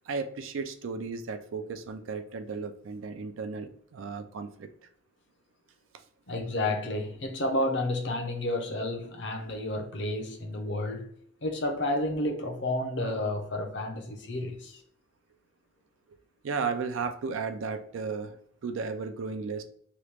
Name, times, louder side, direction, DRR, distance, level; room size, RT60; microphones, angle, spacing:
voice 1, 0.1-4.7 16.4-18.4 18.6-19.6, right 5 dB, 80° right, 0.4 m, -34 dB
voice 2, 6.3-11.1 11.4-14.8, left 1 dB, 60° left, 0.7 m, -31 dB
3.0 x 2.3 x 3.3 m
head